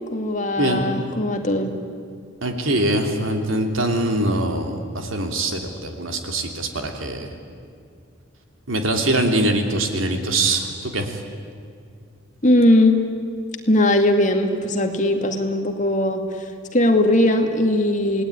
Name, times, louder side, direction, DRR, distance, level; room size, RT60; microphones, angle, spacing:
voice 1, 0.1-1.7 12.4-13.0 13.7-16.2 16.7-18.2, left 1 dB, 40° left, 4 dB, 2.2 m, -19 dB
voice 2, 2.4-7.3 8.7-11.1, right 1 dB, 80° right, 4 dB, 3.0 m, -23 dB
27.5 x 18.5 x 9.9 m, 2.2 s
head